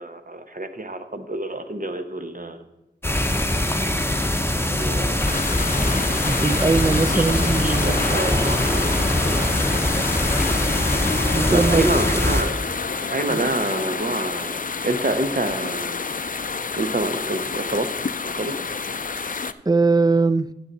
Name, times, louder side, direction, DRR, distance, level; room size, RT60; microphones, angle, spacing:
voice 1, 0.0-2.7 4.8-5.6 7.1-7.3 7.6-9.5 11.5-12.6 13.1-16.0 16.8-18.7, right 2 dB, 50° right, 0.9 m, -28 dB
sound 1, 3.0-12.4, left 1 dB, 15° left, 0.8 m, -22 dB
sound 2, 5.2-19.5, left 5 dB, 50° left, 0.4 m, -29 dB
voice 2, 6.2-8.4 11.3-11.9 13.3-13.4 19.7-20.5, right 3 dB, 20° right, 0.4 m, -21 dB
sound 3, 7.1-15.8, left 3 dB, 70° left, 0.8 m, -36 dB
9.5 x 7.6 x 4.0 m
wide cardioid pair, 45°, 18 cm